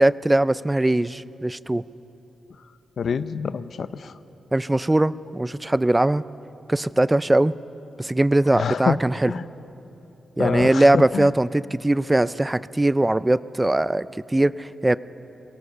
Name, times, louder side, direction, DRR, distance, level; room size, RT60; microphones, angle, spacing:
voice 1, 0.0-1.8 4.5-6.2 6.7-7.5 8.0-9.3 10.4-15.0, right 1 dB, 15° right, 17 dB, 0.4 m, -20 dB
voice 2, 3.0-4.1 8.5-9.0 9.3-9.4 10.4-11.3, left 6 dB, 65° left, 14 dB, 0.6 m, -26 dB
22.5 x 18.0 x 6.9 m, 2.9 s
cardioid pair, 100°, 0 cm